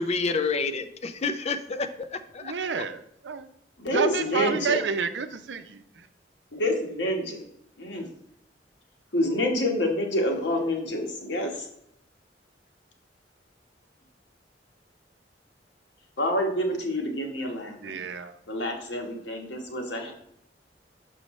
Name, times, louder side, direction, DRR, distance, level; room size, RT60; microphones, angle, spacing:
voice 1, 0.0-2.6, left 4 dB, 35° left, 9 dB, 0.4 m, -29 dB
voice 2, 2.4-3.5 3.9-5.8 17.8-18.4, right 5 dB, 80° right, 10 dB, 0.6 m, -29 dB
voice 3, 3.8-4.8 6.5-7.4 7.8-8.1 9.1-11.7 16.2-18.0 18.5-20.1, left 1 dB, 80° left, 2 dB, 1.3 m, -28 dB
6.5 x 5.4 x 3.1 m, 0.72 s
head